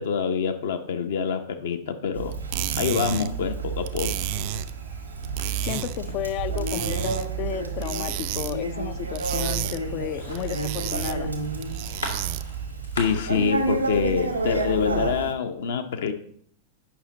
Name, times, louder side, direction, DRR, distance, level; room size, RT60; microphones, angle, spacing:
voice 1, 0.0-2.4 2.8-4.3 13.0-16.1, left 6 dB, 60° left, 7 dB, 0.8 m, -26 dB
Conversation, 2.1-15.3, right 3 dB, 80° right, 1.0 m, -30 dB
sound 1, 2.3-12.6, right 12 dB, 50° right, 0.4 m, -33 dB
sound 2, 4.4-14.7, left 1 dB, 80° left, 1.7 m, -44 dB
voice 2, 5.6-11.3, left 13 dB, 40° left, 15 dB, 0.4 m, -33 dB
8.7 x 5.7 x 4.2 m, 0.65 s
figure-of-eight pair, 90°, 0 cm